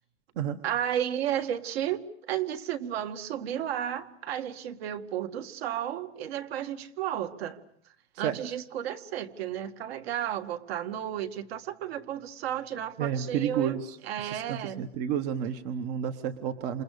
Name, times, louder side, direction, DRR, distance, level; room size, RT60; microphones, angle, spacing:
voice 1, 0.6-7.6 8.2-14.8, right 10 dB, 50° right, 9 dB, 2.1 m, -33 dB
voice 2, 13.0-16.8, right 9 dB, 35° right, 10 dB, 1.2 m, -31 dB
28.5 x 28.0 x 6.7 m, 0.66 s
supercardioid pair, 170°, 38 cm